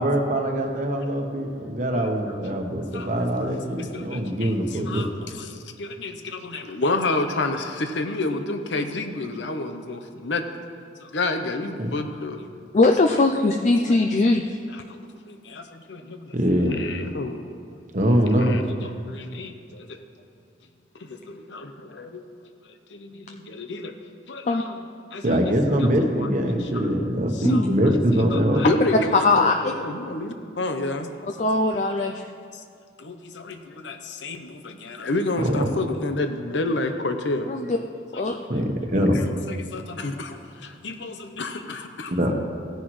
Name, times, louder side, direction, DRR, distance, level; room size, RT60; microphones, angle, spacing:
voice 1, 0.0-5.0 11.8-11.9 16.3-16.7 17.9-18.6 25.2-28.6 35.4-35.7 38.5-39.1 42.2-42.3, equal, 45° right, 3 dB, 1.1 m, -23 dB
voice 2, 1.9-2.4 2.9-10.6 11.0-12.5 13.9-14.0 14.7-17.5 18.0-20.0 20.9-21.6 22.0-22.2 22.6-23.9 24.3-24.8 25.1-25.9 26.2-26.3 26.6-26.9 27.3-27.8 28.1-31.1 31.4-32.6 33.0-37.5 38.1-38.6 39.5-42.3, left 2 dB, 80° left, 7 dB, 0.8 m, -31 dB
voice 3, 12.7-14.5 24.4-24.6 27.4-27.7 29.1-29.5 31.4-32.1 37.5-37.8 38.1-38.3, left 3 dB, 40° left, 4 dB, 0.4 m, -20 dB
16.0 x 10.0 x 3.2 m, 2.3 s
head